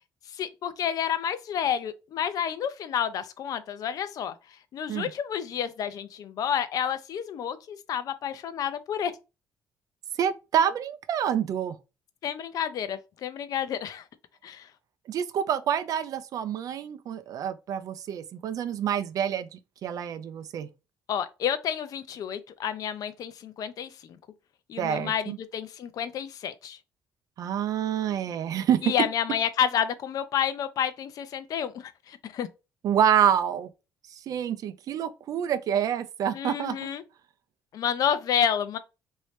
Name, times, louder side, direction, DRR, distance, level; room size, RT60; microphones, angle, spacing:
voice 1, 0.3-4.3 4.7-9.1 12.2-14.0 14.4-14.7 21.1-24.2 24.7-26.8 28.8-32.5 36.3-37.0 37.7-38.8, left 8 dB, 65° left, 0.5 m, -30 dB
voice 2, 10.2-11.8 15.1-20.7 24.8-25.4 27.4-28.9 32.8-33.7 34.3-36.9, right 9 dB, 65° right, 0.4 m, -27 dB
3.1 x 2.7 x 3.2 m
cardioid pair, 80°, 7 cm